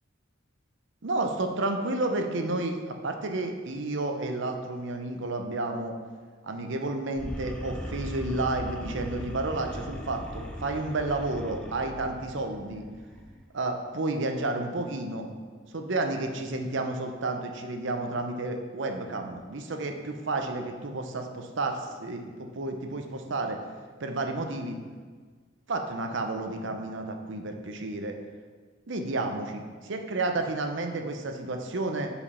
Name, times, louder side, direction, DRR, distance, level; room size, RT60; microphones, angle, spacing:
voice 1, 1.0-5.9 6.4-12.9 13.5-15.3 15.7-23.6 24.0-24.8 25.7-28.1 28.9-32.1, right 2 dB, 65° right, 5 dB, 0.7 m, -31 dB
sound 1, 7.2-13.4, equal, 5° left, 0.5 m, -39 dB
5.1 x 4.9 x 5.5 m, 1.5 s
head